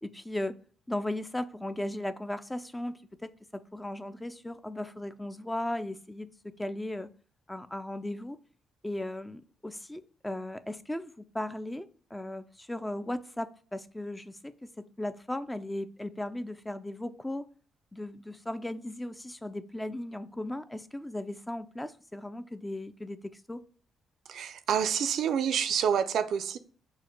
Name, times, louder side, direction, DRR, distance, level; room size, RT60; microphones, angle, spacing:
voice 1, 0.0-0.6 0.9-7.1 7.5-8.4 8.8-17.5 17.9-23.6, left 1 dB, 10° left, 0.3 m, -37 dB
voice 2, 24.3-26.6, right 8 dB, 70° right, 0.4 m, -28 dB
4.5 x 2.1 x 4.4 m
cardioid pair, 90°, 0 cm